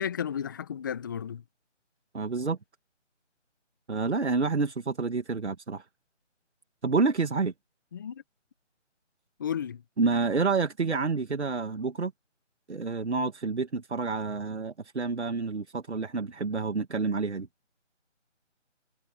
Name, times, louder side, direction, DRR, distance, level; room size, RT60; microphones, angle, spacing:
voice 1, 0.0-1.4 7.9-8.2 9.4-9.8, left 8 dB, 15° left, 1.4 m, -33 dB
voice 2, 2.1-2.6 3.9-5.8 6.8-7.5 10.0-12.1 12.7-17.5, right 4 dB, 65° right, 2.2 m, -28 dB
figure-of-eight pair, 160°, 37 cm